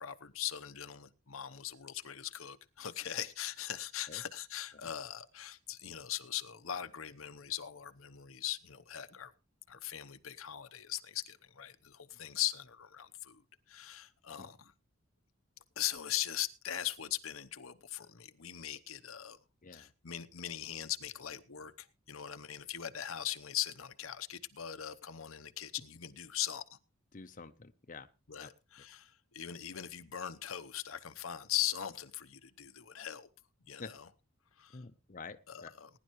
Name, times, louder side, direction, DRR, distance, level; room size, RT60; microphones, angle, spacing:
voice 1, 0.0-9.3 9.7-13.4 13.7-14.7 15.8-19.4 19.7-26.8 28.3-33.3 33.7-33.9 34.6-34.8 35.5-35.9, left 11 dB, 85° left, 0.9 m, -40 dB
voice 2, 27.1-28.1 28.4-28.5 33.8-33.9 34.7-35.7, left 4 dB, 40° left, 0.7 m, -48 dB
20.0 x 10.5 x 3.1 m
head